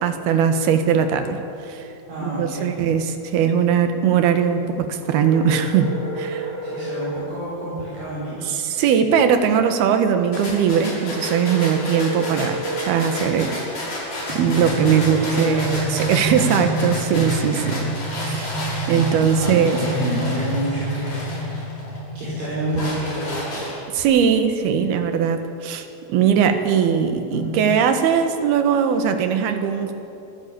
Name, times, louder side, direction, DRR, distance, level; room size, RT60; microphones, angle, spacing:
voice 1, 0.0-1.9 2.2-6.5 8.5-13.5 14.3-17.8 18.2-18.5 18.9-19.8 23.9-29.9, right 7 dB, 85° right, 7 dB, 3.4 m, -20 dB
voice 2, 2.1-2.7 6.6-8.6 14.9-15.9 19.3-21.7 22.2-23.7 27.3-27.8, right 1 dB, 65° right, -9 dB, 7.3 m, -29 dB
sound 1, 5.0-7.2 11.0-13.2, right 2 dB, 15° right, 7.8 m, -30 dB
sound 2, 10.3-22.0 22.4-24.0, left 1 dB, 45° left, 7.3 m, -32 dB
sound 3, 14.3-22.5, right 1 dB, 80° left, 5.8 m, -27 dB
26.5 x 15.0 x 8.7 m, 2.8 s
omnidirectional pair, 4.3 m